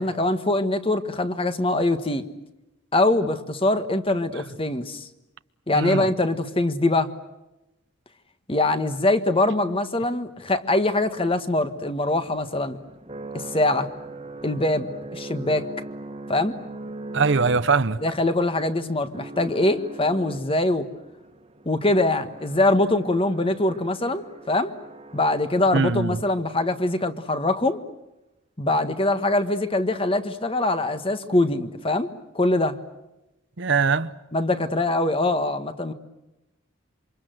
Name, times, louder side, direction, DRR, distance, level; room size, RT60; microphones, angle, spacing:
voice 1, 0.0-2.3 2.9-5.1 5.7-7.1 8.5-12.8 13.3-13.9 14.4-15.7 16.3-16.5 18.0-20.9 21.6-24.7 25.1-27.8 28.6-32.1 32.3-32.8 34.3-35.9, left 2 dB, 25° left, 1.4 m, -23 dB
voice 2, 5.7-6.1 17.1-18.0 25.7-26.2 33.6-34.1, right 4 dB, 60° right, 0.9 m, -22 dB
sound 1, 10.3-26.5, right 2 dB, 30° right, 1.7 m, -41 dB
27.5 x 26.0 x 7.9 m
head